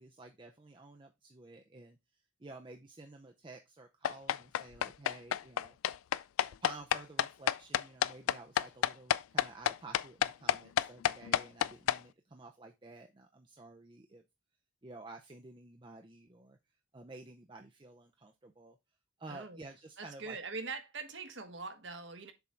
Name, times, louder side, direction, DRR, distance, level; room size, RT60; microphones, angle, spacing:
voice 1, 0.0-5.8 6.6-14.2 14.8-16.6 16.9-18.8 19.2-20.4, right 3 dB, 25° right, 0.5 m, -52 dB
sound 1, 4.0-12.0, left 10 dB, 90° left, 0.3 m, -29 dB
voice 2, 19.3-19.6 20.0-22.3, right 4 dB, 60° right, 1.1 m, -42 dB
7.0 x 3.8 x 4.3 m
head